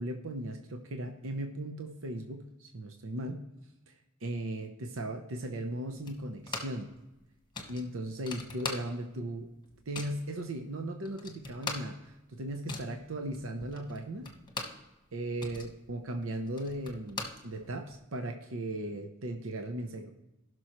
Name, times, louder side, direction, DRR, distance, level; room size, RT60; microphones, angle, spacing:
voice 1, 0.0-3.4 4.2-6.9 7.7-9.5 9.9-14.3 15.1-20.1, right 1 dB, 65° right, 5 dB, 0.8 m, -37 dB
sound 1, 6.1-6.9 7.2-7.3 7.5-9.2 9.5-10.2 10.8-10.9 11.1-14.9 15.2-18.0, left 3 dB, 20° left, 1.3 m, -41 dB
16.0 x 6.2 x 3.1 m, 0.97 s
head